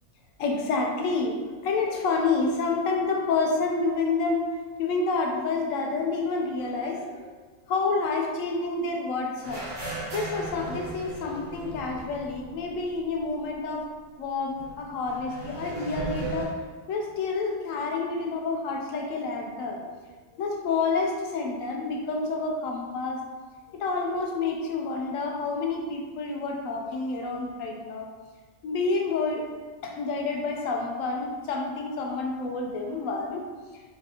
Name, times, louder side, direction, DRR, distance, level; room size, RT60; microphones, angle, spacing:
voice 1, 0.4-4.4 4.8-7.3 7.7-9.7 10.1-13.9 14.2-16.5 16.9-19.9 20.4-23.2 23.7-28.1 28.6-29.4 29.8-33.5, left 3 dB, 85° left, 1 dB, 1.0 m, -28 dB
sound 1, 9.4-13.2 13.5-13.6 14.6-16.5, right 2 dB, 70° right, 1.2 m, -37 dB
4.0 x 3.4 x 2.7 m, 1.4 s
omnidirectional pair, 1.4 m